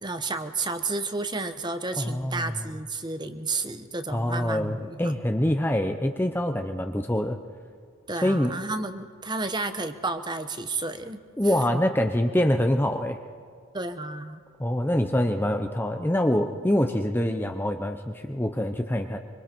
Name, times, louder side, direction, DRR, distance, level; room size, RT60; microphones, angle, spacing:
voice 1, 0.0-5.1 8.1-11.8 13.7-14.4, right 3 dB, 20° right, 9 dB, 1.0 m, -32 dB
voice 2, 2.0-2.6 4.1-7.4 8.2-8.5 11.4-13.2 14.6-19.2, left 1 dB, 10° left, 5 dB, 0.7 m, -25 dB
25.5 x 25.0 x 4.5 m, 2.1 s
head